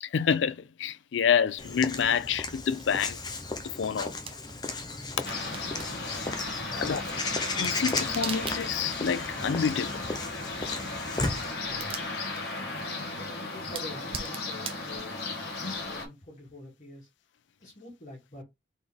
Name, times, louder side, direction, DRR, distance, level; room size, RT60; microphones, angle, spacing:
voice 1, 0.0-3.2 3.7-4.1 6.8-7.0 7.5-10.1, left 7 dB, 80° left, 0.4 m, -28 dB
sound 1, 1.5-16.0, right 6 dB, 30° right, 0.5 m, -45 dB
Walk footsteps / Bird vocalization bird call bird song, 1.6-11.5, left 3 dB, 20° left, 0.5 m, -35 dB
sound 2, 5.2-16.1, left 3 dB, 55° left, 1.3 m, -35 dB
voice 2, 6.5-7.1 11.7-12.1 12.7-17.1 17.6-18.4, left 1 dB, 40° left, 2.0 m, -46 dB
4.1 x 3.6 x 3.4 m
head